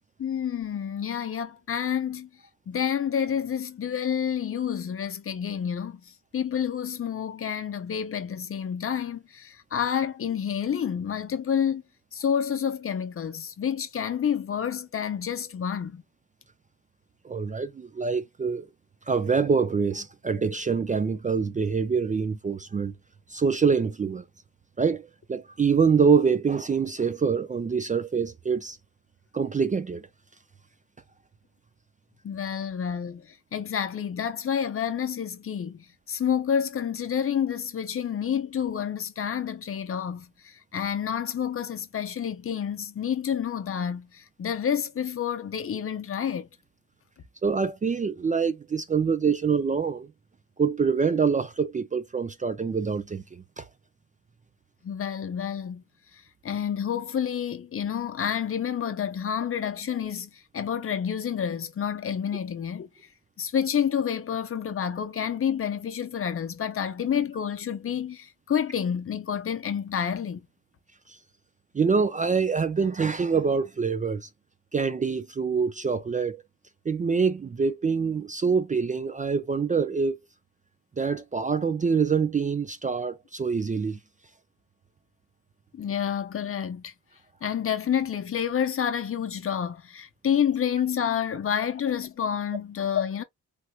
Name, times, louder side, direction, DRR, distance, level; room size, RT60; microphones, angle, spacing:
voice 1, 0.2-2.3 2.7-11.8 12.1-16.0 32.2-46.5 54.8-55.8 56.1-62.9 63.4-70.4 85.7-86.9 87.4-93.2, left 8 dB, 45° left, 0.6 m, -29 dB
voice 2, 17.2-18.7 19.1-22.9 23.3-24.2 24.8-28.8 29.3-30.0 47.4-50.1 50.6-53.7 71.1-71.2 71.7-74.3 74.7-76.4 76.9-80.2 81.0-84.0, right 5 dB, 25° right, 0.3 m, -25 dB
3.2 x 2.9 x 2.3 m
cardioid pair, 75°, 33 cm